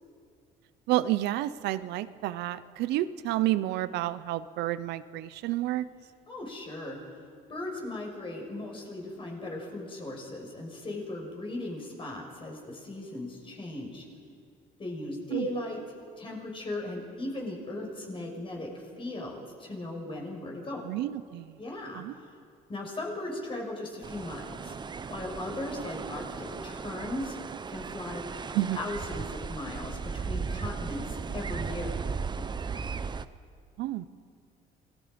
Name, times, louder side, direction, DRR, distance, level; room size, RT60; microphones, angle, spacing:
voice 1, 0.9-5.9 15.3-15.5 20.8-21.6 21.9-22.1 28.5-28.8 33.8-34.1, right 15 dB, 85° right, 14 dB, 0.7 m, -30 dB
voice 2, 6.3-7.0 7.5-14.0 14.8-15.8 16.2-20.8 21.6-22.0 22.7-24.7 25.1-27.4 27.7-28.3 28.7-31.9, left 1 dB, 30° left, 0 dB, 6.0 m, -37 dB
sound 1, 24.0-33.3, right 5 dB, 25° right, 0.7 m, -36 dB
28.0 x 19.5 x 5.3 m, 2.2 s
cardioid pair, 110°, 17 cm